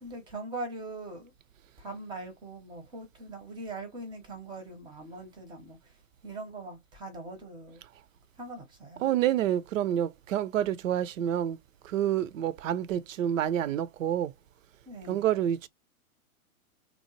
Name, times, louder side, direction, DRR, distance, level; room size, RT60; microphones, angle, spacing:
voice 1, 0.0-1.3 1.8-7.8 8.4-9.1 14.9-15.3, right 2 dB, 10° right, 0.6 m, -41 dB
voice 2, 9.0-11.6 11.8-14.3 15.1-15.7, right 11 dB, 65° right, 0.5 m, -28 dB
2.9 x 2.0 x 2.9 m
hypercardioid pair, 115°, 43 cm